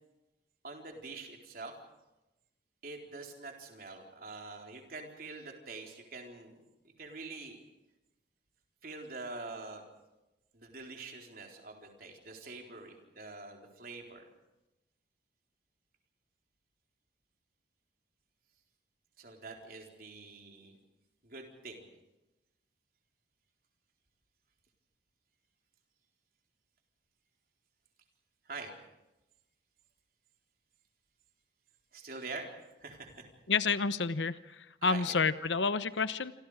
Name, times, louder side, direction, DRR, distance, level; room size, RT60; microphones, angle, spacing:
voice 1, 0.6-1.7 2.8-6.6 7.0-7.6 8.8-9.8 10.5-14.2 19.2-20.7 21.2-21.8 28.4-28.7 31.9-32.5 32.8-33.3 34.8-35.0, right 3 dB, 50° right, 2 dB, 4.1 m, -45 dB
voice 2, 33.5-36.3, left 4 dB, 75° left, 14 dB, 1.0 m, -30 dB
27.5 x 26.0 x 5.0 m, 0.96 s
head